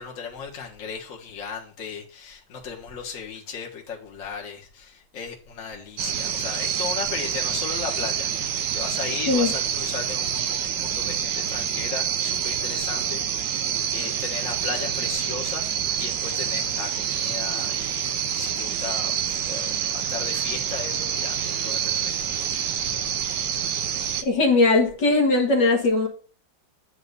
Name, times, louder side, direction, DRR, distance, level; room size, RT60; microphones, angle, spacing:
voice 1, 0.0-22.1 22.4-22.9, left 6 dB, 45° left, 1.9 m, -36 dB
sound 1, 6.0-24.2, right 8 dB, 65° right, 1.4 m, -27 dB
voice 2, 24.2-26.1, left 3 dB, 65° left, 2.0 m, -19 dB
9.6 x 3.7 x 6.7 m
omnidirectional pair, 2.1 m